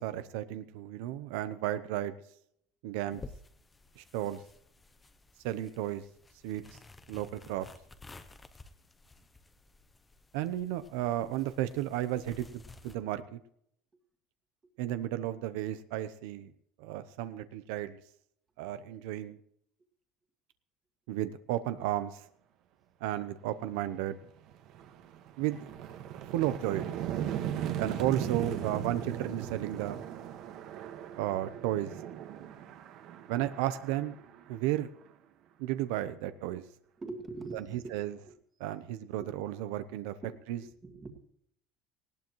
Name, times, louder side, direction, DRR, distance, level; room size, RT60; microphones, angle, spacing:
voice 1, 0.0-2.1 2.8-3.2 4.0-4.4 5.4-6.0 6.4-6.6 7.1-7.7 10.3-12.5 12.8-13.4 14.8-16.5 16.8-18.0 18.6-19.4 21.1-22.3 23.0-24.2 25.4-25.6 26.3-26.9 27.8-30.0 31.2-31.9 33.3-34.2 34.5-34.9 35.6-36.6 37.5-37.6 37.9-38.1 38.6-40.1 40.5-40.6, right 13 dB, 80° right, 12 dB, 0.7 m, -33 dB
sound 1, 3.1-13.0, left 3 dB, 10° left, 0.7 m, -53 dB
sound 2, 23.7-23.9 24.3-35.1, right 10 dB, 50° right, 1.5 m, -38 dB
voice 2, 37.0-38.0 38.2-38.4 39.2-39.4 40.2-40.3 40.6-41.1, right 3 dB, 15° right, 4 dB, 1.9 m, -43 dB
19.0 x 17.0 x 3.1 m, 0.70 s
cardioid pair, 165°, 0 cm